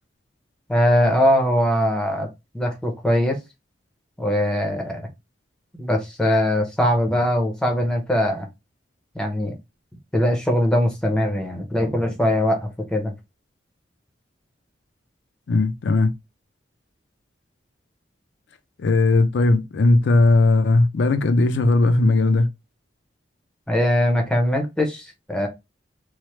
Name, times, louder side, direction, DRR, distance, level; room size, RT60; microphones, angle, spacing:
voice 1, 0.7-2.3 2.5-3.4 4.2-5.0 5.8-8.5 9.1-9.6 10.1-13.1 23.7-25.5, equal, 5° left, 0.6 m, -21 dB
voice 2, 15.5-16.1 18.8-22.5, left 2 dB, 70° left, 0.4 m, -18 dB
3.1 x 2.1 x 3.1 m
head